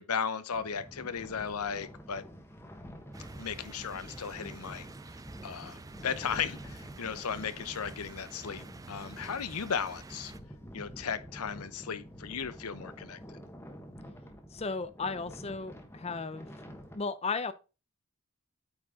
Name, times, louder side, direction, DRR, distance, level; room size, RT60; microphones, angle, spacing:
voice 1, 0.0-2.2 3.4-4.9 5.4-10.3 10.7-13.4, left 6 dB, 80° left, 0.7 m, -36 dB
sound 1, 0.5-17.0, equal, 10° left, 1.2 m, -48 dB
sound 2, 3.1-10.4, right 3 dB, 15° right, 0.3 m, -48 dB
voice 2, 14.5-16.5 16.9-17.5, left 4 dB, 30° left, 0.6 m, -35 dB
8.6 x 4.6 x 3.6 m
head